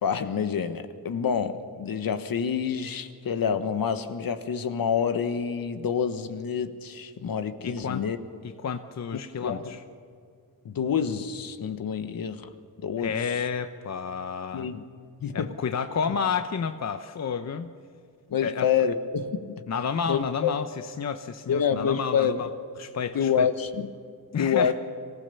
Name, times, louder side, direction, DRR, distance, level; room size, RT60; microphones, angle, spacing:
voice 1, 0.0-8.2 9.4-9.7 10.6-12.5 12.8-13.1 14.5-14.8 15.2-15.5 18.3-19.4 20.1-20.5 21.5-22.4 23.1-23.9 24.4-24.7, left 7 dB, 60° left, 10 dB, 1.4 m, -27 dB
voice 2, 7.6-8.0 8.4-9.8 13.0-14.7 15.3-17.7 18.4-18.7 19.7-22.5 22.8-23.5 24.3-24.7, left 6 dB, 45° left, 9 dB, 0.9 m, -30 dB
24.5 x 15.5 x 7.0 m, 2.2 s
cardioid pair, 80°, 38 cm